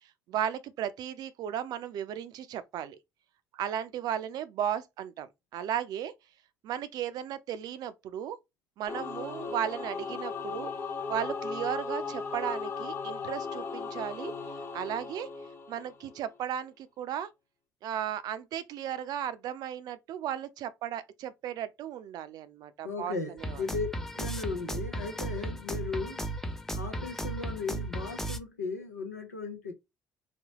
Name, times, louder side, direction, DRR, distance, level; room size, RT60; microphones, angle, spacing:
voice 1, 0.3-3.0 3.5-6.1 6.6-8.4 8.8-10.7 11.1-14.3 14.7-15.3 15.7-17.3 17.8-23.6, right 10 dB, 50° right, 0.5 m, -35 dB
Singing / Musical instrument, 8.9-16.4, left 4 dB, 30° left, 1.2 m, -37 dB
voice 2, 22.8-23.9 24.1-26.2 26.7-29.7, left 4 dB, 80° left, 0.7 m, -36 dB
sound 1, 23.4-28.4, right 1 dB, 5° left, 0.5 m, -35 dB
4.0 x 2.1 x 2.9 m
figure-of-eight pair, 50°, 9 cm